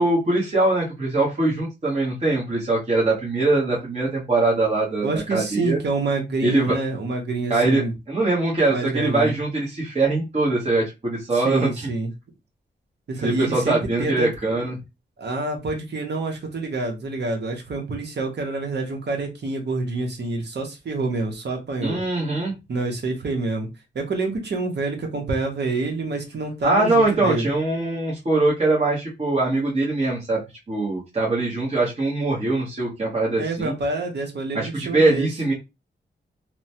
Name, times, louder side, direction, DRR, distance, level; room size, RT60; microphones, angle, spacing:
voice 1, 0.0-5.8 6.4-6.8 7.5-11.9 13.2-14.8 21.8-22.5 26.6-30.4 30.7-33.7 34.5-35.5, right 2 dB, 35° right, 1.1 m, -22 dB
voice 2, 5.0-7.9 8.7-9.3 11.3-12.1 13.1-14.3 15.2-22.0 22.7-23.7 23.9-27.5 33.4-35.3, right 3 dB, 65° right, 0.8 m, -27 dB
3.0 x 2.1 x 2.8 m
wide cardioid pair, 115°, 19 cm